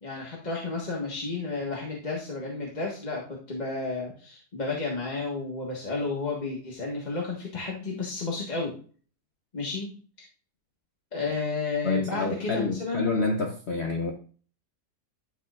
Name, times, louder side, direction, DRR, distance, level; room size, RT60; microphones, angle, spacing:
voice 1, 0.0-8.7 9.5-9.9 10.2-10.3 11.1-13.2, left 3 dB, 25° left, 1.6 m, -32 dB
voice 2, 11.8-14.1, left 3 dB, 50° left, 1.0 m, -28 dB
11.0 x 6.1 x 2.5 m
omnidirectional pair, 1.7 m